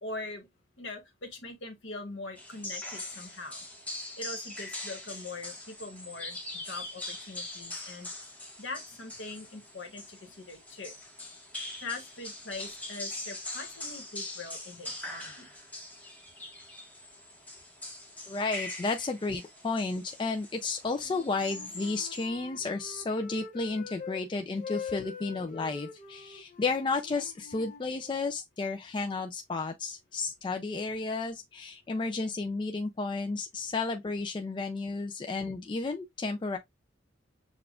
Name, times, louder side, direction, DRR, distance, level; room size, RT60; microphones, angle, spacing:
voice 1, 0.0-0.5 0.8-3.6 4.2-8.1 8.6-10.9 11.8-15.5, left 2 dB, 70° left, 1.2 m, -42 dB
sound 1, 2.4-22.3, left 2 dB, 10° left, 1.1 m, -42 dB
voice 2, 18.3-36.6, left 3 dB, 25° left, 0.3 m, -32 dB
Wind instrument woodwind instrument, 21.0-24.2 24.5-28.3, left 6 dB, 45° left, 0.8 m, -44 dB
6.8 x 2.4 x 2.3 m
head